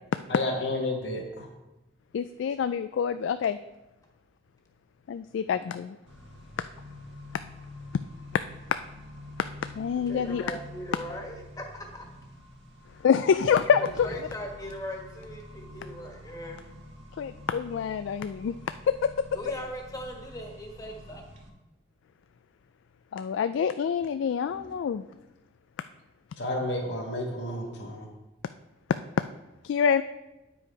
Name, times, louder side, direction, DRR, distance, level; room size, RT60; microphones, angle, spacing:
voice 1, 0.3-1.5 5.5-5.6 26.4-28.1, left 1 dB, 70° left, -2 dB, 2.0 m, -31 dB
voice 2, 2.1-3.6 5.1-6.0 9.8-10.4 13.0-14.1 17.2-18.6 18.9-19.1 23.1-25.0 29.6-30.0, left 7 dB, 85° left, 11 dB, 0.3 m, -26 dB
Accelerating revving vroom, 6.1-21.5, left 1 dB, 70° right, 1.5 m, -47 dB
voice 3, 10.1-12.0 13.8-16.6 19.3-21.2 24.5-24.7 25.2-25.3, equal, 20° left, 1 dB, 1.4 m, -39 dB
9.2 x 6.2 x 4.6 m, 1.0 s
head